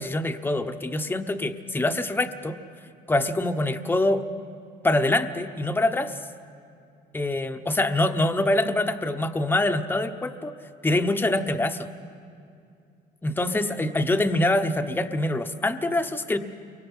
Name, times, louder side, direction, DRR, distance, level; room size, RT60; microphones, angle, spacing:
voice 1, 0.0-2.6 3.1-4.2 4.8-6.2 7.1-10.5 10.8-11.9 13.2-16.4, left 1 dB, 10° left, 7 dB, 1.0 m, -25 dB
30.0 x 23.5 x 5.7 m, 2.4 s
cardioid pair, 110°, 17 cm